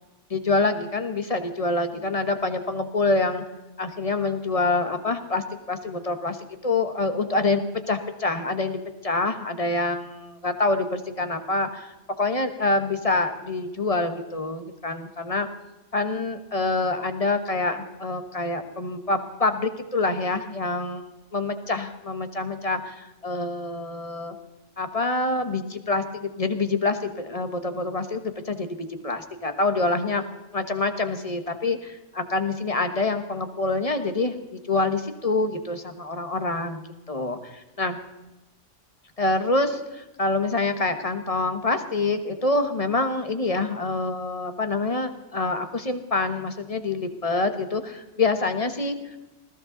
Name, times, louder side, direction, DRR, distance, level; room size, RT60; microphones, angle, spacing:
voice 1, 0.3-3.4 3.8-7.6 7.9-15.5 15.9-24.4 24.8-28.7 29.0-30.2 30.5-36.8 37.1-38.0 39.2-49.2, left 3 dB, 30° left, 8 dB, 1.4 m, -26 dB
20.0 x 15.5 x 4.0 m, 0.99 s
omnidirectional pair, 1.2 m